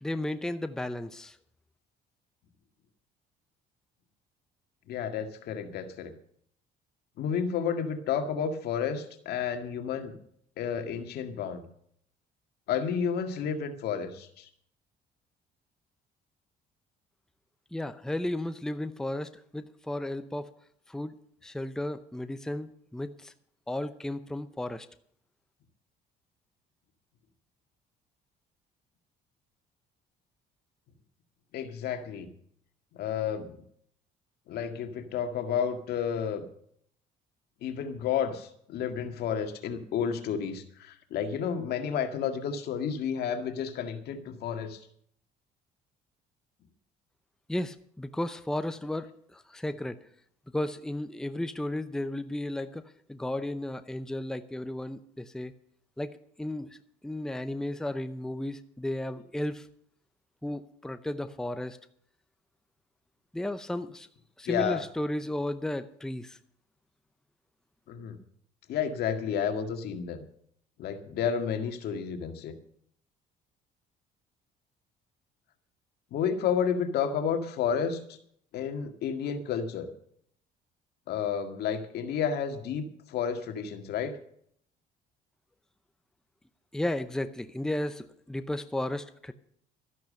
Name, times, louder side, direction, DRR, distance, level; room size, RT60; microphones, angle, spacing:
voice 1, 0.0-1.4 17.7-20.5 20.9-21.2 21.4-23.3 23.7-24.9 47.5-49.1 49.3-50.0 50.5-52.8 53.1-55.5 56.0-56.1 56.4-56.7 57.0-59.7 60.4-61.8 63.3-64.1 64.4-66.4 86.7-89.3, left 1 dB, 5° left, 10 dB, 0.7 m, -34 dB
voice 2, 4.9-6.1 7.2-10.2 10.6-11.6 12.7-14.5 31.5-32.3 32.9-33.6 34.5-36.5 37.6-44.8 64.5-64.8 67.9-68.2 68.7-70.2 70.8-72.5 76.1-78.0 78.5-79.9 81.1-84.2, left 7 dB, 70° left, 7 dB, 1.9 m, -31 dB
13.0 x 11.0 x 6.6 m, 0.65 s
cardioid pair, 110°, 17 cm